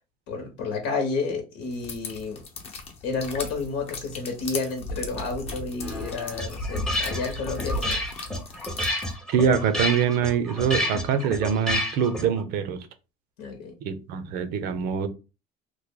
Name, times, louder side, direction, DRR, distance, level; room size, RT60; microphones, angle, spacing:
voice 1, 0.3-2.4 3.0-8.0 13.4-13.8, left 4 dB, 85° left, 0.9 m, -31 dB
sound 1, 1.7-9.1, left 2 dB, 35° left, 0.8 m, -36 dB
sound 2, 5.8-12.4, left 1 dB, 5° left, 0.6 m, -30 dB
voice 2, 9.3-12.9 13.8-15.1, right 7 dB, 70° right, 0.6 m, -24 dB
3.2 x 2.1 x 3.6 m
cardioid pair, 140°, 17 cm